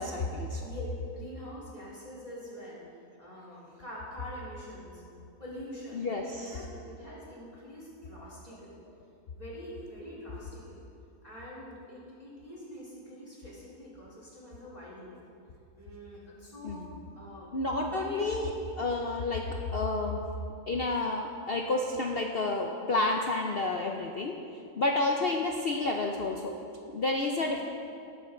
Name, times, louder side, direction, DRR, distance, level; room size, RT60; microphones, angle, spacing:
voice 1, 0.0-0.7 5.9-6.5 16.6-16.9 17.5-18.5 18.8-19.4 19.7-20.2 20.7-24.4 24.8-26.5 26.9-27.6, left 2 dB, 55° left, 1 dB, 0.7 m, -30 dB
voice 2, 0.6-2.8 3.2-5.0 5.4-8.8 9.3-10.9 11.2-15.2 15.8-16.9 17.1-17.5 17.8-18.3, equal, 25° left, -7 dB, 3.5 m, -45 dB
18.5 x 7.8 x 3.8 m, 2.5 s
omnidirectional pair, 1.7 m